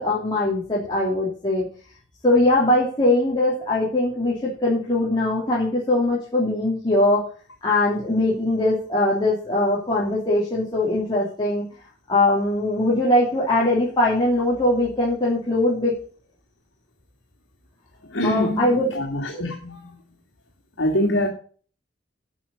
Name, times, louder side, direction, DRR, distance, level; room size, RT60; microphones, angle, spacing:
voice 1, 0.0-1.6 2.2-7.2 7.6-11.6 12.1-15.9 18.2-18.9, left 1 dB, 25° left, 3.0 m, -21 dB
voice 2, 18.1-19.8 20.8-21.3, equal, 85° left, 2.2 m, -24 dB
11.5 x 6.4 x 7.1 m
head